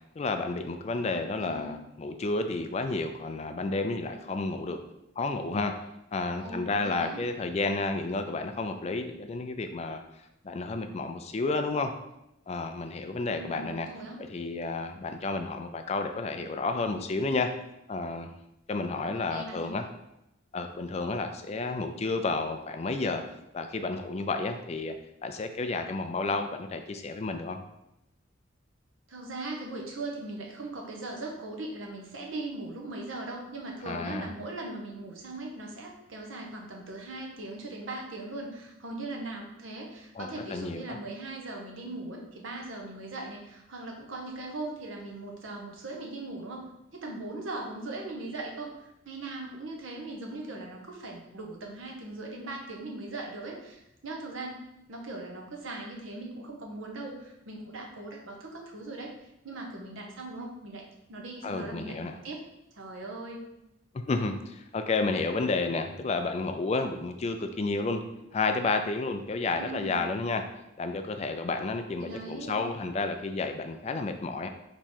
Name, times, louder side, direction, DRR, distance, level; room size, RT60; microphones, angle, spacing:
voice 1, 0.2-4.8 5.2-5.7 6.1-10.0 10.4-11.9 12.5-13.9 14.2-17.5 17.9-18.3 18.7-19.9 20.5-23.2 23.5-24.9 25.2-27.6 33.9-34.3 40.2-41.0 61.4-62.1 63.9-68.0 68.3-70.4 70.8-74.5, left 3 dB, 30° left, 6 dB, 0.3 m, -31 dB
voice 2, 1.4-1.8 6.4-7.2 13.3-14.2 18.9-19.7 29.1-54.6 54.9-59.2 59.4-60.8 61.1-62.4 62.7-63.4 69.6-70.0 72.0-72.7, right 2 dB, 75° right, 0 dB, 0.9 m, -39 dB
3.6 x 3.0 x 4.3 m, 0.86 s
head